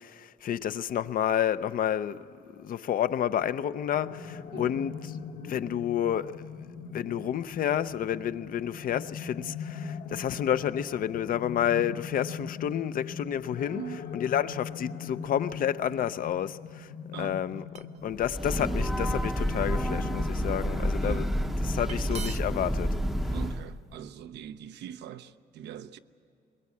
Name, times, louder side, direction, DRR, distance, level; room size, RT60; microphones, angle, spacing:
voice 1, 0.0-2.2 2.5-5.2 5.5-6.4 6.9-16.9 17.2-17.6 18.0-21.3 21.6-23.0, left 10 dB, 55° left, 0.6 m, -30 dB
sound 1, 3.9-21.6, left 5 dB, 90° left, 1.4 m, -41 dB
voice 2, 13.7-14.0 17.1-17.4 21.0-21.4 23.3-26.0, right 9 dB, 80° right, 0.7 m, -41 dB
sound 2, 17.3-18.1 18.8-19.0 19.6-20.4 21.6-21.7 21.9-22.6, right 7 dB, 40° right, 0.6 m, -43 dB
Breathing / Train, 18.2-23.7, equal, ahead, 0.7 m, -29 dB
21.5 x 21.0 x 8.5 m
cardioid pair, 125°, 17 cm